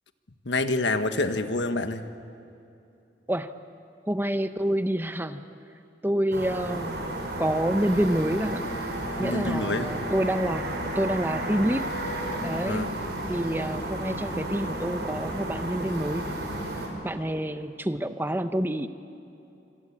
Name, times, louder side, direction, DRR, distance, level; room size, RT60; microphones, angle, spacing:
voice 1, 0.4-2.0 9.2-9.9 12.6-12.9, left 2 dB, 85° left, 9 dB, 1.4 m, -27 dB
voice 2, 4.1-5.4 6.0-7.0 7.4-8.6 9.2-11.9 12.4-13.0 13.3-16.2 17.0-18.9, right 1 dB, 10° right, 10 dB, 0.8 m, -27 dB
sound 1, 6.3-16.9, right 1 dB, 70° right, 5.7 m, -32 dB
26.5 x 26.0 x 8.8 m, 2.8 s
head